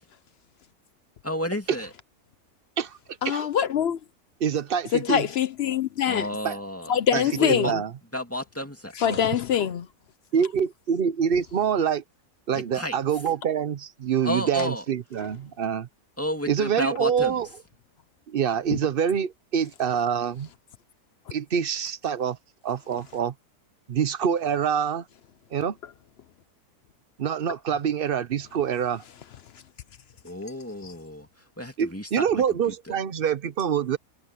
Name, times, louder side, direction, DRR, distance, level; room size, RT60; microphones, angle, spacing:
voice 1, 1.2-1.9 6.1-7.7 8.1-9.4 12.5-13.0 14.2-14.8 16.2-17.4 30.2-32.4 32.9-33.0, left 1 dB, 10° left, 2.4 m, -32 dB
voice 2, 3.2-4.0 4.9-6.3 6.9-7.7 9.0-9.9, left 9 dB, 65° left, 0.6 m, -24 dB
voice 3, 4.4-5.3 6.4-6.6 7.1-7.9 10.3-12.0 12.5-15.9 16.5-17.5 18.3-20.5 21.3-22.4 22.6-23.3 23.9-25.0 25.5-25.8 27.2-29.0 31.8-34.0, right 8 dB, 50° right, 0.7 m, -26 dB
omnidirectional pair, 1.6 m